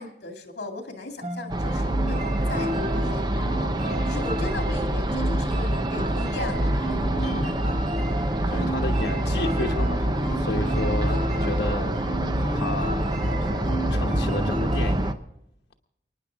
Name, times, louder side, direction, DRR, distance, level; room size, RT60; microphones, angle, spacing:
voice 1, 0.0-3.7 4.1-7.7, left 2 dB, 65° left, 3 dB, 2.2 m, -38 dB
sound 1, 1.2-14.9, equal, 45° right, 4.1 m, -33 dB
sound 2, 1.5-15.1, right 1 dB, 25° right, 0.8 m, -26 dB
voice 2, 7.0-7.6 8.1-15.1, left 2 dB, 85° left, 2 dB, 1.0 m, -33 dB
29.5 x 10.0 x 3.6 m, 0.86 s
head